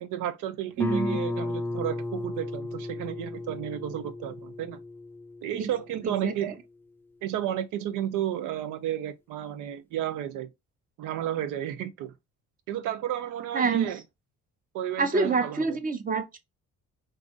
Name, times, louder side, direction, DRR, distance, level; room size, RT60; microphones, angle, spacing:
voice 1, 0.0-4.8 5.4-6.6 7.2-10.5 11.0-12.1 12.7-14.0 14.7-15.8, right 11 dB, 85° right, 0.5 m, -32 dB
Guitar, 0.8-6.2, left 2 dB, 5° left, 0.4 m, -34 dB
voice 2, 0.8-1.2 5.5-5.7 6.0-6.3 13.5-13.9 15.0-16.4, right 4 dB, 30° right, 0.7 m, -27 dB
2.6 x 2.4 x 3.7 m
cardioid pair, 90°, 30 cm